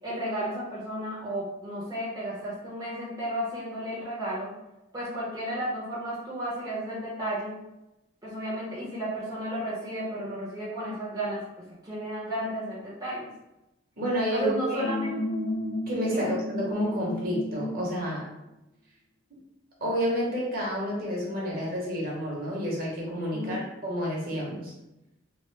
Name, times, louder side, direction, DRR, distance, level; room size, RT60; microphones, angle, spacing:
voice 1, 0.0-4.5 4.9-7.6 8.2-11.4 11.8-13.3 14.3-15.1 16.1-16.3 23.3-23.6, right 1 dB, 20° right, -8 dB, 0.7 m, -33 dB
voice 2, 14.0-14.8 15.9-18.2 19.8-24.7, equal, 45° right, -4 dB, 0.9 m, -30 dB
sound 1, 14.8-18.0, left 1 dB, 45° left, 0.5 m, -32 dB
3.0 x 2.0 x 3.2 m, 0.95 s
head